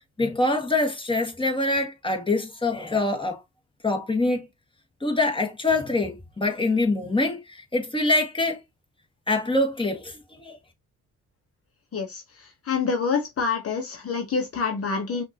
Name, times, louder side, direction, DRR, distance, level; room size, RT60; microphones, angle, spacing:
voice 1, 0.2-3.4 3.8-4.5 5.0-8.6 9.3-10.6, left 2 dB, 15° left, 1.6 m, -25 dB
voice 2, 11.9-15.2, left 5 dB, 50° left, 1.1 m, -27 dB
5.7 x 2.7 x 2.9 m
cardioid pair, 90°, 30 cm